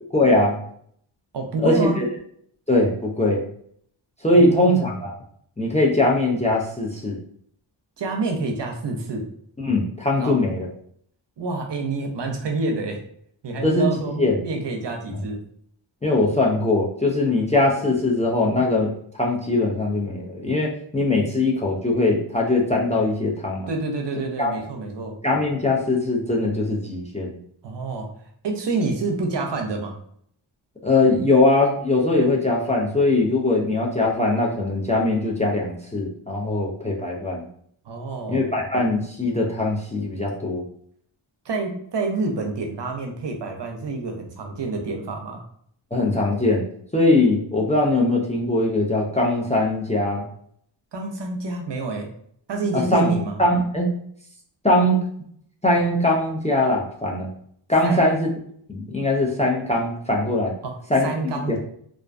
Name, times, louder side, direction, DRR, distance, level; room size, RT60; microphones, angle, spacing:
voice 1, 0.1-0.6 1.6-2.1 2.7-3.4 4.2-5.2 5.6-7.2 9.6-10.7 13.6-13.9 14.2-14.4 16.0-23.7 24.4-24.5 25.2-27.4 30.8-37.5 38.3-40.6 45.9-46.6 46.9-50.3 52.7-53.1 53.4-53.9 54.6-55.0 55.6-57.3 57.7-58.3 58.7-60.6 60.9-61.1 61.5-61.6, left 2 dB, 15° left, -1 dB, 0.4 m, -21 dB
voice 2, 1.3-2.0 4.3-4.9 8.0-9.2 10.1-10.4 11.4-13.0 13.4-15.4 23.7-25.2 27.6-28.1 28.4-30.0 37.9-38.4 41.5-45.4 50.9-52.1 52.5-53.4 57.8-58.1 60.6-61.6, right 3 dB, 60° right, 2 dB, 0.6 m, -28 dB
2.4 x 2.2 x 2.4 m, 0.65 s
wide cardioid pair, 60°, 48 cm